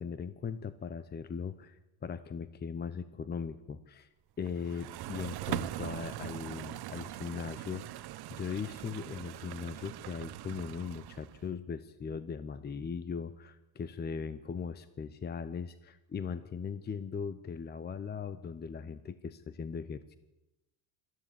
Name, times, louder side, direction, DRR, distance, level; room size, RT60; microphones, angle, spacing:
voice 1, 0.0-4.1 4.4-20.2, left 6 dB, 25° left, 14 dB, 0.8 m, -39 dB
sound 1, 4.5-11.5, right 15 dB, 60° right, 1.0 m, -41 dB
19.0 x 14.5 x 9.9 m, 0.97 s
cardioid pair, 125°, 43 cm